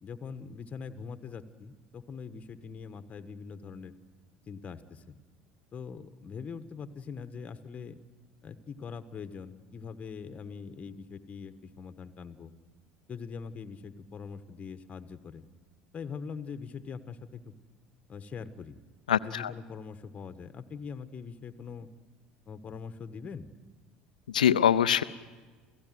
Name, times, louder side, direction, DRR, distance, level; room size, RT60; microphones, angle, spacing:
voice 1, 0.0-3.9 4.5-5.1 5.7-8.0 8.4-12.5 13.1-15.4 15.9-17.5 18.1-18.8 19.2-21.9 22.5-23.5, left 5 dB, 35° left, 10 dB, 1.3 m, -42 dB
voice 2, 19.1-19.5 24.3-25.0, left 9 dB, 80° left, 15 dB, 0.6 m, -24 dB
29.5 x 16.0 x 7.7 m, 1.3 s
figure-of-eight pair, 65°, 4 cm